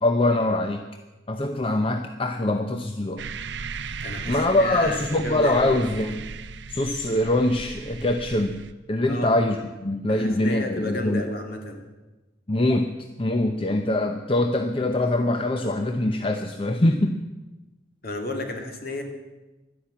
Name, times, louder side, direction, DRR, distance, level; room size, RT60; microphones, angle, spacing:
voice 1, 0.0-0.9 1.3-3.2 4.3-6.3 6.7-11.2 12.5-12.9 13.2-17.2, left 1 dB, 30° left, 6 dB, 0.7 m, -23 dB
sound 1, 3.2-8.7, right 5 dB, 70° right, 0.6 m, -37 dB
voice 2, 4.0-5.7 9.1-9.3 10.1-11.8 18.0-19.0, left 2 dB, 50° left, 3 dB, 2.1 m, -32 dB
12.0 x 10.5 x 8.6 m, 1.1 s
head